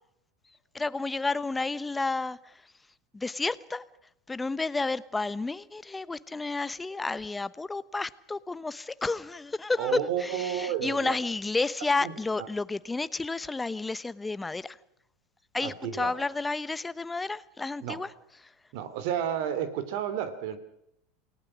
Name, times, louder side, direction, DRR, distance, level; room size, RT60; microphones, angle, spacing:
voice 1, 0.7-2.5 3.1-3.8 4.3-14.8 15.5-18.1, left 3 dB, 15° left, 1.0 m, -31 dB
voice 2, 9.8-11.2 12.0-12.1 12.4-12.5 15.6-16.1 17.8-18.0 18.7-20.6, right 9 dB, 60° right, 2.9 m, -31 dB
28.5 x 18.5 x 6.3 m
figure-of-eight pair, 80°, 0 cm